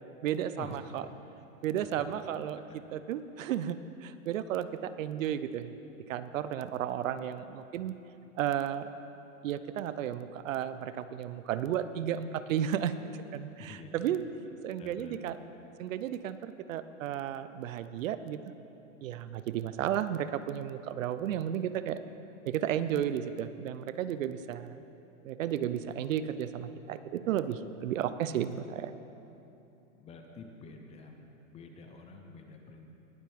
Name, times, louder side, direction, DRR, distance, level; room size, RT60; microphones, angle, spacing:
voice 1, 0.2-1.0 1.6-2.6 2.9-5.7 6.1-7.9 8.4-8.9 9.4-12.9 13.3-14.2 14.6-15.4 15.8-18.4 19.0-22.0 22.4-24.8 25.2-28.9, right 10 dB, 70° right, 13 dB, 0.6 m, -33 dB
voice 2, 1.8-2.2 2.7-2.8 3.5-3.6 13.6-14.4 14.8-15.2 29.9-32.9, left 4 dB, 15° left, 4 dB, 0.6 m, -49 dB
19.0 x 7.4 x 3.5 m, 2.9 s
hypercardioid pair, 135°, 40 cm